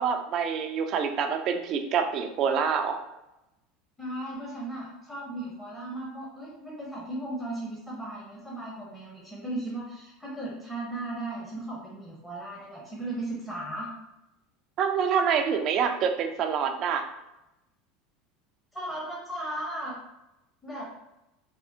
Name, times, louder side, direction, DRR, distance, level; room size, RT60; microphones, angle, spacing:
voice 1, 0.0-3.0 14.8-17.1, right 7 dB, 45° right, 6 dB, 0.3 m, -26 dB
voice 2, 4.0-13.9 15.8-15.9 18.7-19.9 20.6-20.9, right 1 dB, 10° left, -5 dB, 0.7 m, -36 dB
3.4 x 2.0 x 2.6 m, 0.94 s
supercardioid pair, 135°, 0 cm